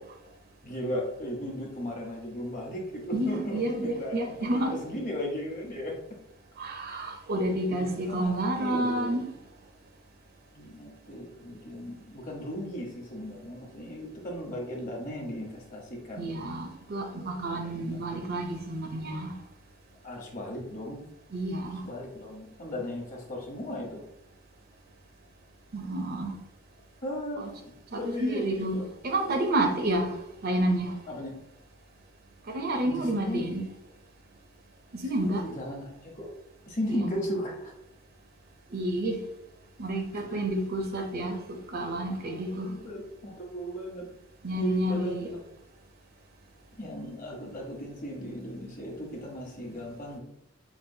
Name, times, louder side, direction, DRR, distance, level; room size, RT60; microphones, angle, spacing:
voice 1, 0.6-5.9 7.7-9.2 10.5-16.4 17.7-18.5 20.0-21.0 21.8-24.0 27.0-27.4 28.0-28.9 29.8-29.9 31.1-31.4 32.8-33.4 35.1-36.3 36.7-37.7 40.1-40.4 42.6-44.1 44.6-45.4 46.8-50.2, equal, 40° left, -1 dB, 1.0 m, -36 dB
voice 2, 3.1-4.8 6.6-9.3 16.2-19.4 21.3-21.9 25.7-26.4 27.4-27.5 27.9-28.8 29.0-31.0 32.5-33.6 34.9-35.4 36.9-37.0 38.7-39.2 39.8-42.8 44.4-45.3, right 1 dB, 45° right, 4 dB, 0.5 m, -30 dB
5.2 x 2.4 x 2.7 m, 0.82 s
head